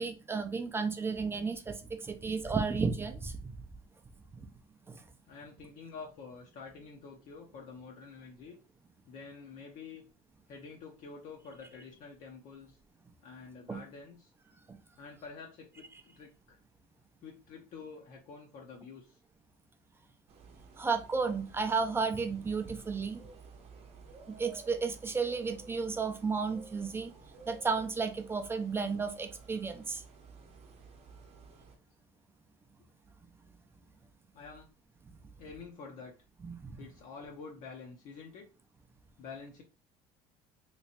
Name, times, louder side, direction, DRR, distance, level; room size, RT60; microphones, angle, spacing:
voice 1, 0.0-3.6 4.9-5.0 13.7-13.8 20.8-23.2 24.4-27.1 27.5-30.0 36.4-36.7, right 4 dB, 15° right, 0.4 m, -33 dB
voice 2, 5.2-8.6 9.0-10.0 10.5-12.8 13.2-14.3 15.0-16.6 17.2-19.2 34.3-34.7 35.4-36.1 36.8-38.5 39.2-39.6, left 5 dB, 55° left, 0.6 m, -48 dB
sound 1, 20.3-31.8, right 5 dB, 40° right, 0.7 m, -54 dB
3.3 x 3.0 x 2.8 m
cardioid pair, 135°, 16 cm